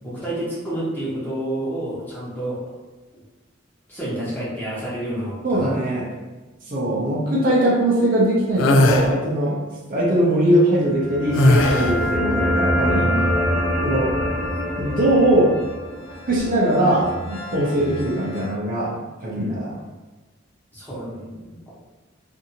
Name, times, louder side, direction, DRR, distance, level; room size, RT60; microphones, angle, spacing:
voice 1, 0.0-2.7 3.9-5.7 12.9-13.3 19.3-19.6 20.7-21.7, right 1 dB, 10° left, -9 dB, 0.9 m, -29 dB
voice 2, 5.4-6.1 6.7-9.6 9.9-13.1 13.8-14.1 14.8-15.5 16.3-19.0 19.2-19.7, right 1 dB, 45° right, -5 dB, 0.6 m, -20 dB
sound 1, 8.6-9.1 11.3-12.0, left 1 dB, 75° left, 0.3 m, -17 dB
sound 2, 10.9-18.5, equal, 35° left, 1.2 m, -25 dB
2.6 x 2.6 x 2.7 m, 1.2 s
head